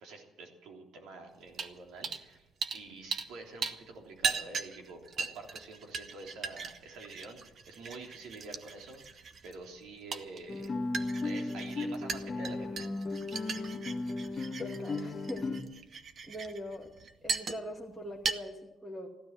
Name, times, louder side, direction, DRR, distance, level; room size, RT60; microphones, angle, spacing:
voice 1, 0.0-7.4 7.7-10.7 11.2-12.9, right 3 dB, 90° right, 1 dB, 3.4 m, -47 dB
sound 1, 1.5-1.7 2.0-2.2 2.6-3.3 3.6-17.8 18.2-18.3, right 5 dB, 40° right, 1.0 m, -38 dB
Guitar, 10.5-15.6, left 2 dB, 25° left, 1.2 m, -35 dB
voice 2, 14.6-15.4 16.3-16.9 17.2-19.1, equal, 15° right, -2 dB, 2.3 m, -41 dB
15.5 x 12.0 x 7.6 m, 0.99 s
cardioid pair, 150°, 0 cm